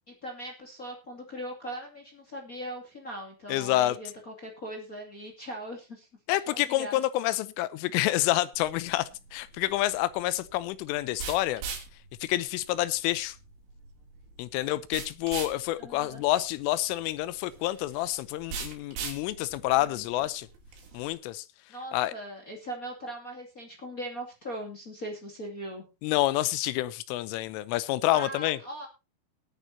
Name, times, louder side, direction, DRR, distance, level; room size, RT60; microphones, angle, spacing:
voice 1, 0.1-6.1 6.5-7.0 15.8-16.2 19.8-20.3 21.7-25.8 28.1-28.9, right 1 dB, 35° left, 1 dB, 1.3 m, -40 dB
voice 2, 3.5-4.0 6.3-11.6 12.2-13.4 14.4-20.5 20.9-21.4 21.9-22.1 26.0-28.6, left 15 dB, 80° left, 17 dB, 3.2 m, -28 dB
sound 1, 8.5-21.1, right 5 dB, 75° right, 5.6 m, -42 dB
19.5 x 9.7 x 2.8 m, 0.27 s
omnidirectional pair, 5.9 m